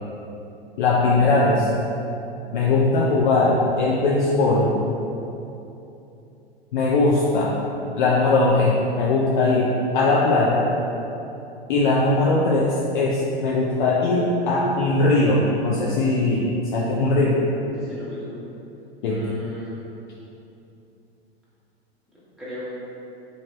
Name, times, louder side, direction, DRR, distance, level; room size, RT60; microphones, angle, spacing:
voice 1, 0.8-1.7 2.5-4.7 6.7-7.6 8.0-10.7 11.7-17.4 19.0-19.4, left 2 dB, 50° left, -4 dB, 0.4 m, -20 dB
voice 2, 17.7-18.2 19.1-19.7 22.4-22.6, left 1 dB, ahead, -11 dB, 0.9 m, -37 dB
3.1 x 2.7 x 3.0 m, 2.9 s
figure-of-eight pair, 95°, 31 cm